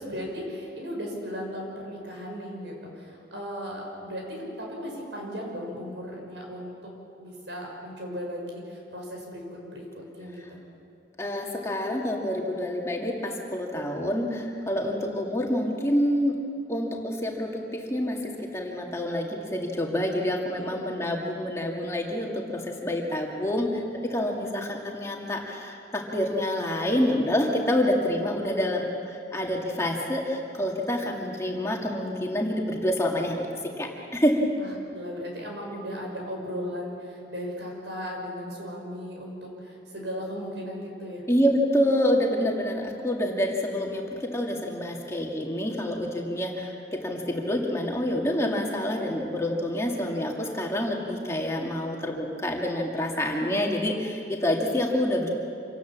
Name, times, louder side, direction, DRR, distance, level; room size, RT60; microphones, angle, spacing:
voice 1, 0.0-6.9 7.2-9.9 10.1-10.6 14.7-15.0 20.5-20.8 22.5-22.6 23.3-23.7 24.3-24.6 34.6-41.2, equal, 80° right, 0 dB, 6.2 m, -37 dB
voice 2, 11.2-16.4 16.7-33.5 33.8-34.4 41.3-55.3, left 1 dB, 15° left, -1 dB, 2.2 m, -27 dB
26.5 x 18.5 x 7.5 m, 2.6 s
head